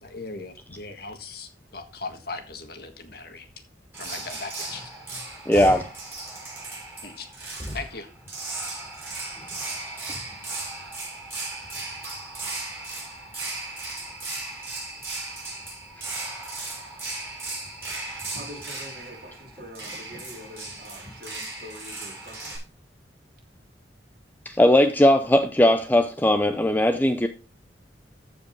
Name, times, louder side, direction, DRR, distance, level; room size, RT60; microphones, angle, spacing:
voice 1, 0.0-3.5 4.0-4.8 5.5-5.8 7.0-7.3 7.7-8.1, left 3 dB, 55° left, 1.7 m, -38 dB
sound 1, 3.9-22.6, right 2 dB, 15° right, 5.4 m, -36 dB
voice 2, 5.5-5.8 24.6-27.3, left 1 dB, 10° left, 0.5 m, -18 dB
voice 3, 18.3-22.6, equal, 55° right, 3.2 m, -44 dB
14.5 x 5.1 x 4.6 m
head